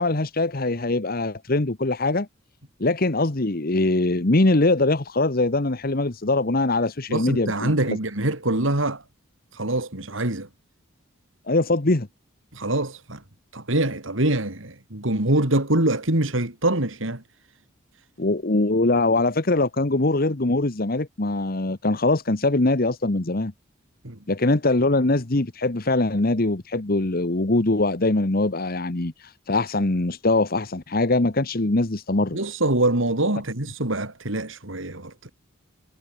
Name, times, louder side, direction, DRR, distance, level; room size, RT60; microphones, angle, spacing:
voice 1, 0.0-2.3 2.8-8.0 11.5-12.1 18.2-23.5 24.3-32.4, left 2 dB, 45° left, 1.2 m, -22 dB
voice 2, 7.1-9.0 9.5-10.5 12.5-13.2 13.5-17.2 24.0-24.2 32.3-35.3, right 1 dB, 70° right, 3.3 m, -24 dB
head